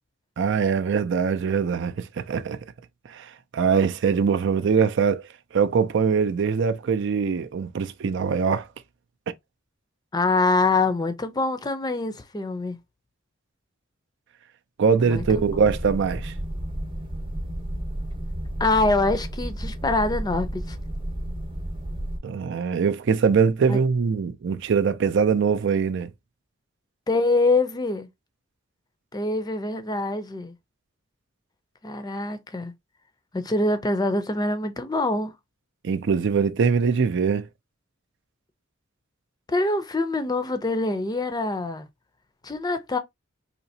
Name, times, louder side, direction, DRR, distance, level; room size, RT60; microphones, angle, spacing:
voice 1, 0.4-2.6 3.1-5.2 5.5-8.7 14.8-16.3 22.2-26.1 35.8-37.5, right 6 dB, 65° right, 0.4 m, -22 dB
voice 2, 10.1-12.8 15.0-15.7 18.6-20.8 23.7-23.8 27.1-28.1 29.1-30.5 31.8-32.7 33.3-35.3 39.5-41.9 42.4-43.0, left 2 dB, 20° left, 0.5 m, -25 dB
sound 1, 15.1-22.2, right 1 dB, 25° right, 0.9 m, -32 dB
4.2 x 2.8 x 2.7 m
head